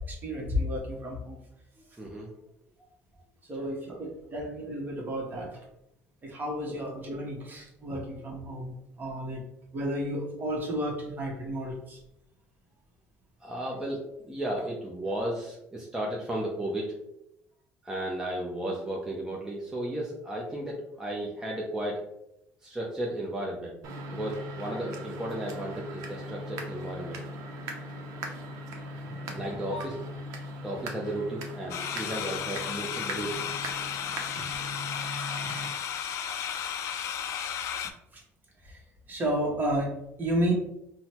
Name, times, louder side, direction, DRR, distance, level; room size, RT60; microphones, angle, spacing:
voice 1, 0.1-1.4 3.4-5.6 6.2-9.4 9.7-12.0 38.1-38.2 38.6-38.8 39.1-40.5, equal, 35° right, 0 dB, 1.0 m, -32 dB
voice 2, 2.0-2.3 3.9-4.0 6.7-6.8 13.4-16.9 17.8-22.0 22.6-23.8 24.1-27.2 29.1-30.1 30.6-33.5 34.4-34.5, right 1 dB, 10° right, -3 dB, 0.6 m, -34 dB
sound 1, 23.8-35.7, equal, 75° right, 0.6 m, -39 dB
sound 2, 31.7-37.9, left 8 dB, 65° left, 0.4 m, -34 dB
3.8 x 2.1 x 2.9 m, 0.81 s
cardioid pair, 105°, 6 cm